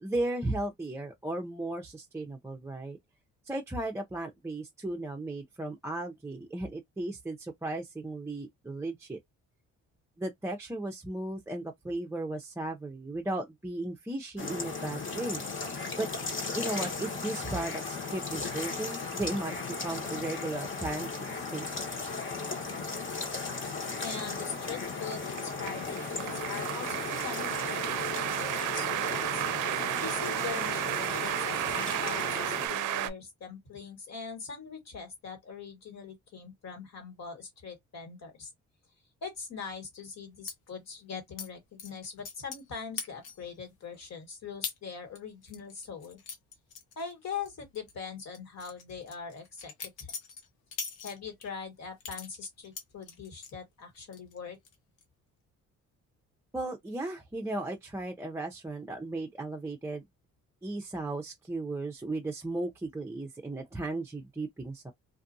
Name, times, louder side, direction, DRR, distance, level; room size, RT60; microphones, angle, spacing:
voice 1, 0.0-3.0 3.5-9.2 10.2-15.4 16.0-16.1 16.5-22.2 56.5-60.0 60.6-64.9, right 2 dB, 10° right, 0.5 m, -36 dB
sound 1, 14.4-32.7, left 4 dB, 40° left, 1.3 m, -36 dB
sound 2, 23.8-33.1, right 13 dB, 85° right, 0.5 m, -33 dB
voice 2, 24.0-29.4 30.0-38.5 39.2-46.2 46.9-50.1 51.0-54.6, left 5 dB, 60° left, 1.7 m, -42 dB
sound 3, 40.5-40.6 41.4-41.5 41.8-42.7 43.0-43.5 43.9-44.0 44.6-44.8 45.2-47.5 47.7-47.9 48.3-51.5 52.0-53.5 53.9-54.4 54.6-55.0, left 6 dB, 85° left, 0.9 m, -41 dB
2.6 x 2.5 x 2.6 m
cardioid pair, 90°, 30 cm